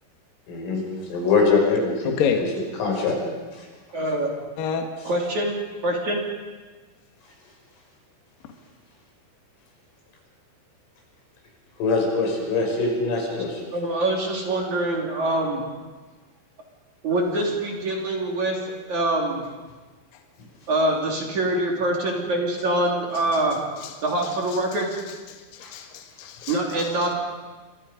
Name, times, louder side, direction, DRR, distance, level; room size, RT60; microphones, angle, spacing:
voice 1, 0.5-0.8 1.1-2.2 2.8-3.2 3.6-3.7 11.8-13.7 25.6-25.7, left 4 dB, 90° left, -1 dB, 8.7 m, -23 dB
voice 2, 2.0-2.5 4.6-4.9 23.1-23.4 23.8-23.9 24.5-24.6 25.3-26.9, left 7 dB, 55° left, 4 dB, 3.0 m, -29 dB
voice 3, 3.9-4.3 5.0-5.5 5.8-6.2 13.7-15.6 17.0-18.6 18.9-19.4 20.7-23.6 24.0-24.9 26.5-27.1, right 1 dB, 45° right, 0 dB, 3.6 m, -24 dB
29.5 x 25.0 x 5.3 m, 1.3 s
omnidirectional pair, 5.6 m